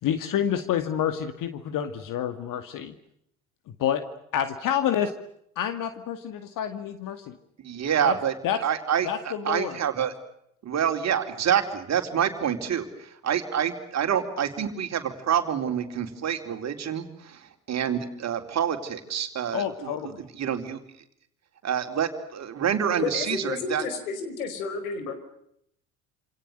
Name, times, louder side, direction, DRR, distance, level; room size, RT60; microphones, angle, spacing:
voice 1, 0.0-2.9 3.7-4.0 4.3-5.1 5.6-7.4 8.0-8.2 8.4-8.6 9.0-9.8 19.5-20.2, left 9 dB, 45° left, 10 dB, 2.3 m, -28 dB
voice 2, 7.6-8.3 8.6-10.1 10.6-20.0 20.4-20.8 21.6-23.8, right 8 dB, 35° right, 6 dB, 4.2 m, -27 dB
voice 3, 23.0-25.1, left 5 dB, 70° left, 10 dB, 5.3 m, -31 dB
28.5 x 27.5 x 6.6 m, 0.74 s
figure-of-eight pair, 65°, 43 cm